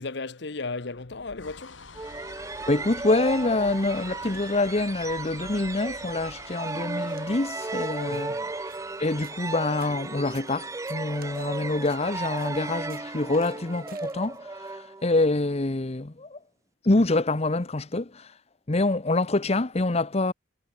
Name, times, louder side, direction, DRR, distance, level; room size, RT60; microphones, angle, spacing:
voice 1, 0.0-1.8 8.1-8.5, left 3 dB, 65° left, 1.1 m, -35 dB
sound 1, 0.9-11.4, left 4 dB, 90° left, 4.2 m, -48 dB
sound 2, 1.9-15.4, right 3 dB, 15° right, 0.5 m, -35 dB
voice 2, 2.7-8.4 9.0-16.4 16.8-18.3 18.7-20.3, left 2 dB, 35° left, 0.9 m, -26 dB
sound 3, 7.1-14.7, right 9 dB, 50° right, 5.2 m, -55 dB
head